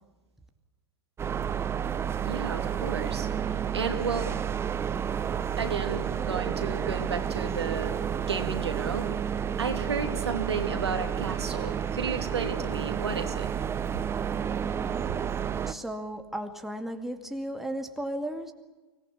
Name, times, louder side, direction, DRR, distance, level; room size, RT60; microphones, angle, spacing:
sound 1, 1.2-15.7, right 8 dB, 20° right, 1.0 m, -30 dB
voice 1, 2.2-4.3 5.6-9.2 9.6-13.5, right 5 dB, 80° right, 6 dB, 2.9 m, -33 dB
voice 2, 15.7-18.5, right 1 dB, ahead, 5 dB, 2.3 m, -35 dB
24.5 x 19.0 x 8.7 m, 1.2 s
hypercardioid pair, 105°, 14 cm